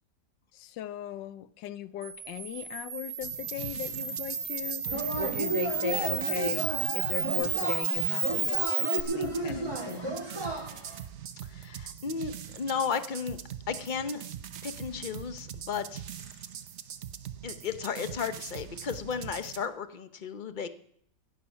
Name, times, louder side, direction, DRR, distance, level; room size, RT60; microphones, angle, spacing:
voice 1, 0.5-4.9 5.2-10.2, left 13 dB, 80° left, 14 dB, 1.4 m, -38 dB
Camera, 2.0-9.0, right 6 dB, 45° right, 1.3 m, -32 dB
sound 1, 3.2-19.7, right 10 dB, 60° right, 0.7 m, -42 dB
Yell / Cheering, 4.9-11.0, right 2 dB, 15° right, 3.3 m, -34 dB
voice 2, 11.4-13.4 13.7-14.2 14.6-16.4 17.4-20.7, left 6 dB, 50° left, 10 dB, 0.6 m, -34 dB
17.5 x 9.6 x 5.8 m, 0.68 s
omnidirectional pair, 2.0 m